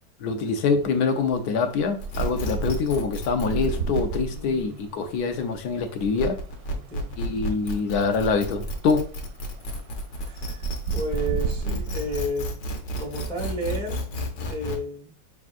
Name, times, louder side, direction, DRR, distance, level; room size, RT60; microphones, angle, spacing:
voice 1, 0.2-6.4 7.2-9.1, left 4 dB, 65° left, 1.2 m, -25 dB
sound 1, 0.8-0.9 1.2-12.3, right 4 dB, 70° right, 0.9 m, -33 dB
sound 2, 2.0-14.8, equal, 85° left, 1.6 m, -32 dB
voice 2, 4.3-5.0 6.7-7.1 10.2-12.6 13.0-14.0 14.5-15.1, right 1 dB, 5° left, 0.5 m, -32 dB
4.8 x 3.6 x 2.4 m
omnidirectional pair, 1.9 m